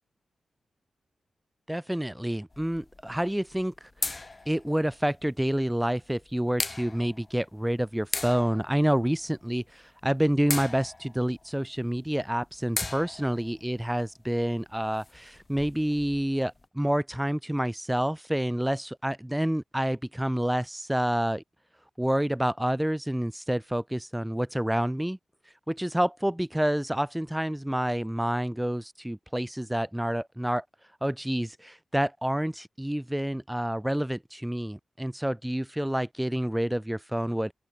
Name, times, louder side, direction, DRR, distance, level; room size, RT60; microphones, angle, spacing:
voice 1, 1.7-3.7 4.0-21.4 22.0-25.2 25.7-30.6 31.0-37.5, right 1 dB, 5° right, 0.3 m, -28 dB
sound 1, 2.5-16.6, left 3 dB, 30° left, 0.9 m, -39 dB
open air
cardioid pair, 80°, 0 cm